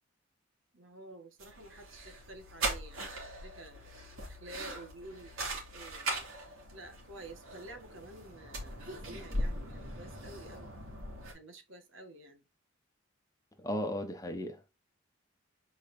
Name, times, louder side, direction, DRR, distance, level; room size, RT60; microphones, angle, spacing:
voice 1, 0.7-6.1 6.7-10.7 11.3-12.4, right 1 dB, 65° right, 1.7 m, -50 dB
sound 1, 1.4-11.3, right 1 dB, 80° right, 2.9 m, -40 dB
voice 2, 13.6-14.7, equal, 15° left, 1.1 m, -36 dB
7.4 x 5.0 x 2.7 m
head